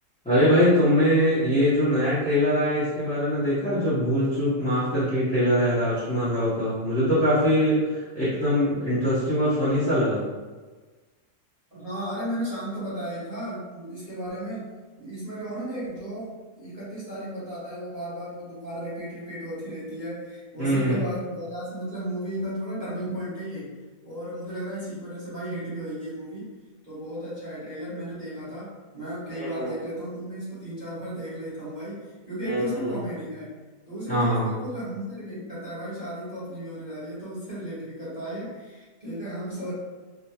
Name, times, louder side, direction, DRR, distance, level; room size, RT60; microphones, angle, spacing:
voice 1, 0.2-10.2 20.6-21.0 29.3-29.7 32.4-32.9 34.1-34.5, equal, 5° left, -16 dB, 0.8 m, -23 dB
voice 2, 11.7-14.7 15.0-23.7 24.0-26.5 26.8-33.5 33.9-39.7, right 1 dB, 25° right, -12 dB, 1.3 m, -34 dB
3.6 x 2.4 x 2.9 m, 1.3 s
omnidirectional pair, 1.8 m